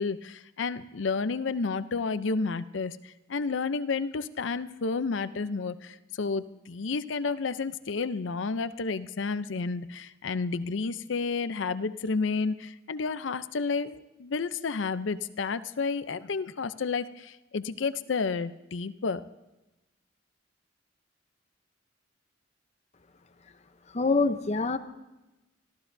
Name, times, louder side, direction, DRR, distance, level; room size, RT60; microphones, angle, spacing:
voice 1, 0.0-19.2, left 4 dB, 80° left, 14 dB, 0.6 m, -31 dB
voice 2, 23.9-24.8, left 3 dB, 35° left, 10 dB, 0.7 m, -25 dB
26.0 x 14.0 x 2.7 m, 1.0 s
head